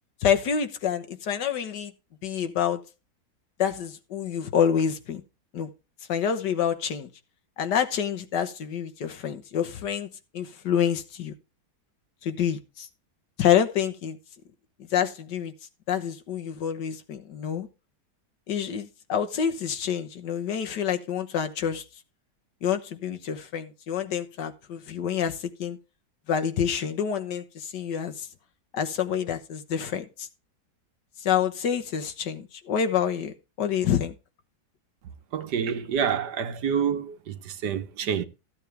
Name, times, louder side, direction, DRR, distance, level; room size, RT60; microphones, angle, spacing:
voice 1, 0.2-1.9 2.2-2.8 3.6-5.2 5.5-5.7 6.1-7.1 7.6-10.1 10.3-11.3 12.2-12.9 13.4-14.2 14.9-15.5 15.9-17.7 18.5-21.8 22.6-25.8 26.3-28.3 28.7-30.3 31.2-34.1, left 8 dB, 90° left, 1.8 m, -27 dB
voice 2, 35.3-38.3, right 7 dB, 80° right, 1.5 m, -28 dB
14.5 x 8.2 x 3.4 m
omnidirectional pair, 1.8 m